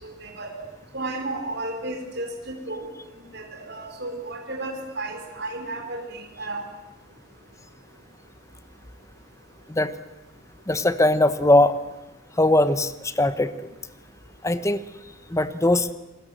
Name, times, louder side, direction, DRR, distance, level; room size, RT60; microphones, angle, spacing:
voice 1, 0.0-0.5 0.9-2.9 3.3-6.6, right 2 dB, 55° right, 2 dB, 4.5 m, -33 dB
voice 2, 10.7-11.8 12.4-13.5 14.4-14.8 15.3-15.9, left 1 dB, 15° left, 13 dB, 1.0 m, -20 dB
29.0 x 20.5 x 7.7 m, 0.99 s
head